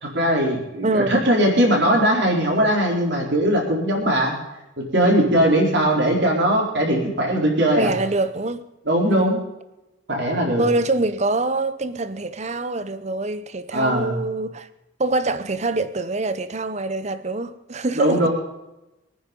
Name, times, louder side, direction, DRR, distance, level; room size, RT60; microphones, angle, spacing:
voice 1, 0.0-4.3 4.8-7.9 8.9-9.4 10.1-10.6 13.7-14.2 18.0-18.3, right 1 dB, 60° right, 4.4 m, -20 dB
voice 2, 0.8-1.2 7.8-8.6 9.0-9.4 10.6-14.7 15.0-18.3, right 2 dB, 35° right, 0.8 m, -25 dB
22.5 x 9.9 x 5.3 m
head